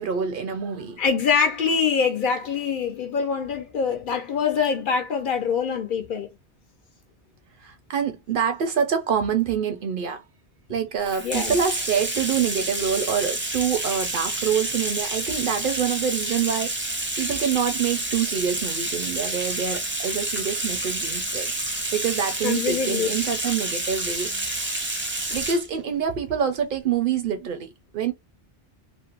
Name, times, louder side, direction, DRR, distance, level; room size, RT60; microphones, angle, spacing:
voice 1, 0.0-1.0 7.6-10.2 10.7-24.7 25.3-28.1, right 7 dB, 60° right, 0.6 m, -26 dB
voice 2, 1.0-6.3 11.2-11.6 22.4-23.1, left 6 dB, 60° left, 0.6 m, -24 dB
Bathtub (filling or washing), 11.0-25.7, right 1 dB, 20° right, 0.3 m, -29 dB
2.5 x 2.1 x 2.9 m
omnidirectional pair, 1.1 m